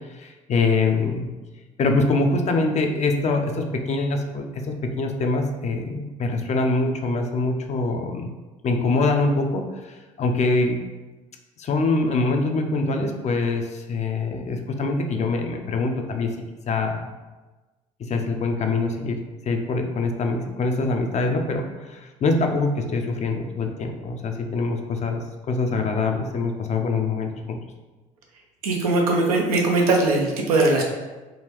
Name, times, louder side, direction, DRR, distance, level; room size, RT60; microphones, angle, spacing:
voice 1, 0.2-1.3 1.8-8.3 8.6-10.8 11.6-16.3 16.7-17.1 18.0-19.2 19.5-27.6, left 3 dB, 40° left, 4 dB, 0.5 m, -24 dB
voice 2, 28.6-30.8, right 2 dB, 90° right, 1 dB, 0.6 m, -20 dB
3.7 x 2.2 x 2.9 m, 1.2 s
hypercardioid pair, 65°, 18 cm